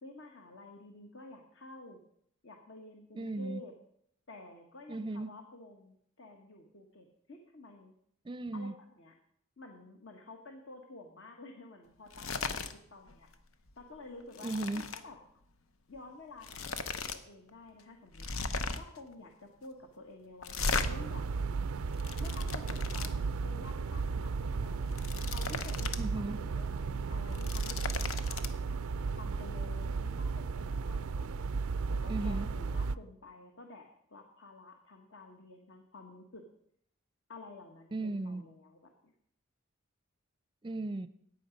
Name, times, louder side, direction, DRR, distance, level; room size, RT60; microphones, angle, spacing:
voice 1, 0.0-2.0 2.4-3.7 4.3-7.9 8.5-9.1 9.6-12.6 12.9-13.3 13.8-14.5 14.9-15.2 15.9-18.4 18.7-21.6 22.2-24.8 25.3-28.8 29.1-31.3 31.9-36.4 37.3-39.1, left 2 dB, 60° left, 3 dB, 1.4 m, -51 dB
voice 2, 3.1-3.6 4.9-5.3 8.2-8.7 14.4-14.9 26.0-26.4 32.1-32.5 37.9-38.5 40.6-41.1, right 2 dB, 20° right, 13 dB, 0.6 m, -36 dB
sound 1, 12.1-12.7 13.1-13.3 13.7-15.0 16.0-16.1 16.4-17.2 17.5-17.6 18.1-19.0 20.4-20.9 21.7-23.1 24.7-26.0 26.4-26.5 27.2-28.5, left 4 dB, 75° left, 0.9 m, -36 dB
sound 2, 20.6-33.0, right 4 dB, 85° right, 0.4 m, -34 dB
14.0 x 9.4 x 5.2 m, 0.68 s
head